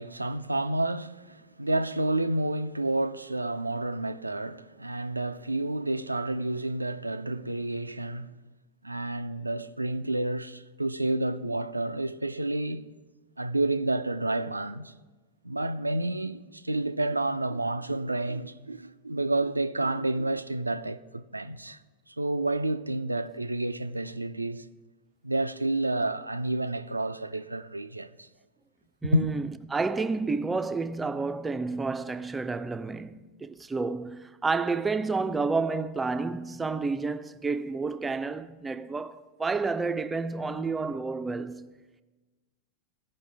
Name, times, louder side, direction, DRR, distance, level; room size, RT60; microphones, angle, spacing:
voice 1, 0.0-8.3 8.8-12.9 13.4-14.9 15.4-21.8 22.1-24.6 25.2-28.3 29.0-29.3, right 2 dB, 85° right, 0.3 m, -30 dB
voice 2, 29.0-29.4 29.7-41.7, right 4 dB, 10° right, 0.4 m, -30 dB
16.5 x 5.5 x 3.4 m
figure-of-eight pair, 90°, 0 cm